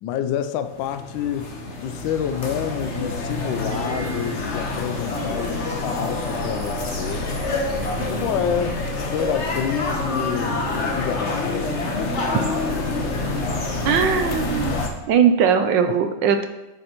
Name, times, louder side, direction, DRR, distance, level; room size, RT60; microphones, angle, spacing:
voice 1, 0.0-1.5 1.8-7.3 8.1-11.7 12.9-13.0 14.7-14.8 15.9-16.0, left 9 dB, 75° left, 10 dB, 1.3 m, -28 dB
sound 1, 0.7-14.9, left 2 dB, 45° left, 1.1 m, -27 dB
sound 2, 3.7-4.5 5.2-6.8 7.8-12.0 12.3-12.4, right 2 dB, 35° right, 1.1 m, -37 dB
voice 2, 13.8-14.7 15.1-16.4, right 7 dB, 75° right, 8 dB, 1.2 m, -19 dB
9.8 x 8.2 x 3.0 m, 1.0 s
omnidirectional pair, 2.1 m